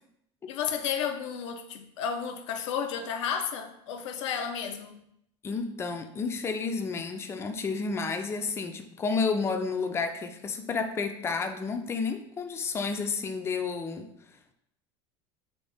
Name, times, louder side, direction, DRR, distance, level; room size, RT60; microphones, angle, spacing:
voice 1, 0.5-5.0, left 7 dB, 85° left, 6 dB, 0.4 m, -32 dB
voice 2, 5.4-14.1, left 4 dB, 15° left, 6 dB, 0.3 m, -31 dB
3.0 x 2.7 x 3.4 m, 0.77 s
supercardioid pair, 100°, 15 cm